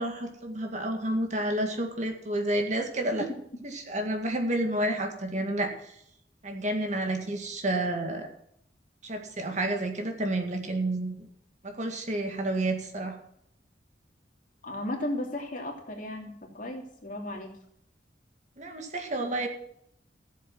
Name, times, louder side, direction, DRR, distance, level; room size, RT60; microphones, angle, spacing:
voice 1, 0.0-3.2 3.7-6.0 6.4-8.3 9.0-11.3 11.6-13.2 18.6-19.5, right 1 dB, 40° right, 4 dB, 2.0 m, -30 dB
voice 2, 14.6-17.5, left 1 dB, 50° left, 1 dB, 2.9 m, -35 dB
15.0 x 7.5 x 6.1 m, 0.72 s
head